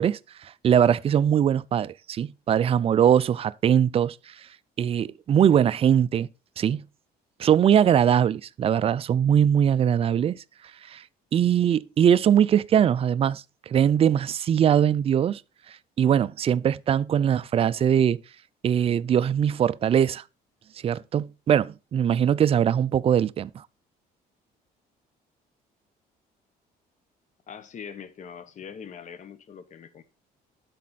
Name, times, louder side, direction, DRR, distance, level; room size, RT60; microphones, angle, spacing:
voice 1, 0.0-4.2 4.8-6.3 6.6-6.8 7.4-10.4 10.9-11.0 11.3-13.4 13.7-15.4 16.0-18.2 18.6-20.2 20.8-23.6, right 9 dB, 35° right, 0.4 m, -21 dB
voice 2, 27.5-30.0, left 7 dB, 45° left, 1.1 m, -42 dB
11.5 x 4.2 x 4.0 m
cardioid pair, 110°, 17 cm